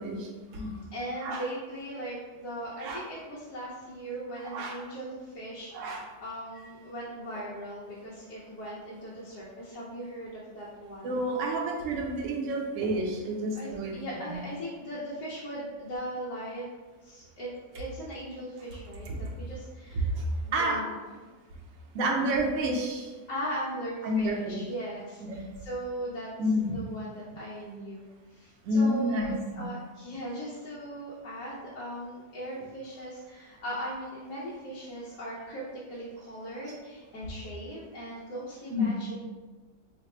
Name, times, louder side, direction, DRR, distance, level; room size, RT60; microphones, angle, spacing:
voice 1, 0.0-0.7 1.2-1.4 2.8-3.0 4.4-4.8 5.7-6.0 11.0-13.9 14.3-14.4 19.1-19.2 19.9-20.8 21.9-23.1 24.0-24.6 25.3-25.5 26.4-26.8 28.6-29.7 38.7-38.9, equal, 60° right, 0 dB, 0.9 m, -29 dB
voice 2, 0.5-11.2 13.5-16.6 17.0-20.1 20.4-20.9 23.3-26.3 26.6-39.2, equal, 80° left, -8 dB, 1.3 m, -39 dB
3.2 x 2.1 x 4.2 m, 1.3 s
omnidirectional pair, 1.7 m